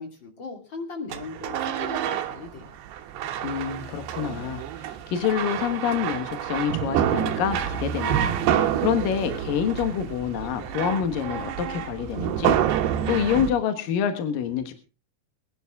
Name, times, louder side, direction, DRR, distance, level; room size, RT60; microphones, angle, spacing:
voice 1, 0.0-2.8, left 3 dB, 35° left, 4 dB, 2.2 m, -38 dB
sound 1, 1.1-13.5, right 10 dB, 70° right, 3.0 m, -28 dB
voice 2, 3.4-12.6 13.1-14.7, left 8 dB, 60° left, 8 dB, 2.5 m, -27 dB
22.5 x 11.0 x 3.6 m, 0.33 s
omnidirectional pair, 5.4 m